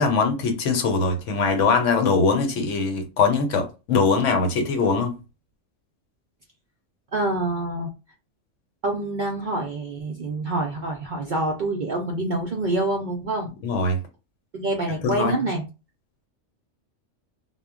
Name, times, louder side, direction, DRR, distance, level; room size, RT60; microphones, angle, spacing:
voice 1, 0.0-5.2 13.6-14.0 15.0-15.5, left 4 dB, 75° left, 1.0 m, -22 dB
voice 2, 7.1-7.9 8.8-13.5 14.5-15.7, right 2 dB, 60° right, 0.5 m, -26 dB
2.1 x 2.1 x 3.5 m
omnidirectional pair, 1.3 m